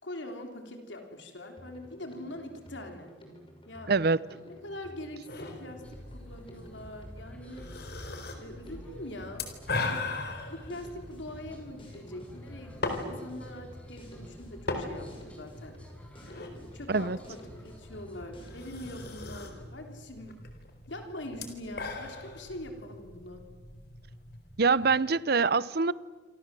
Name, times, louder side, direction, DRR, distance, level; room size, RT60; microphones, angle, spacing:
voice 1, 0.0-3.1 3.7-3.9 4.5-7.7 8.4-9.5 9.8-10.1 10.5-15.8 16.7-20.4 20.9-23.5, left 1 dB, 75° left, 3.3 m, -43 dB
Drum kit, 1.6-19.0, equal, 30° left, 5.9 m, -52 dB
voice 2, 3.9-4.2 16.9-17.2 24.6-25.9, right 4 dB, 55° right, 0.7 m, -24 dB
sound 1, 5.3-25.0, left 3 dB, 55° left, 4.1 m, -40 dB
sound 2, 5.8-19.6, equal, 5° left, 4.8 m, -51 dB
27.5 x 27.0 x 7.6 m
head